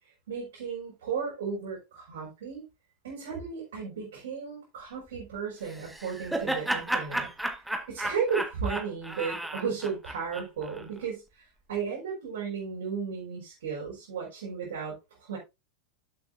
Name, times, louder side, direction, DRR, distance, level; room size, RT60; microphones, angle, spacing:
voice 1, 0.3-2.6 3.0-7.3 7.9-11.2 11.7-14.9 15.2-15.4, right 6 dB, 60° right, 5.3 m, -34 dB
Laughter, 5.7-10.8, right 1 dB, 5° right, 1.6 m, -33 dB
12.0 x 8.2 x 2.6 m
figure-of-eight pair, 90°, 0 cm